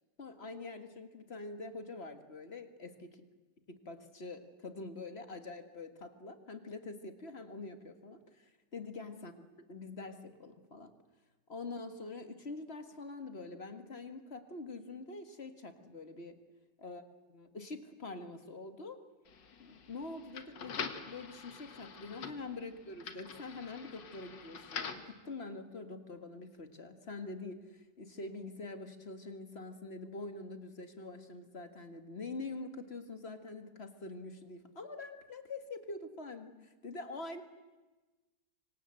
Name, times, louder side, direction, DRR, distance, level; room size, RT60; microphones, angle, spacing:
voice 1, 0.2-3.1 3.7-9.3 9.7-10.9 11.5-16.4 16.8-17.0 17.3-19.0 19.6-37.4, left 3 dB, 35° left, 8 dB, 1.9 m, -45 dB
sound 1, 19.3-25.1, left 6 dB, 75° left, 2.2 m, -45 dB
26.0 x 25.0 x 7.8 m, 1.2 s
omnidirectional pair, 1.9 m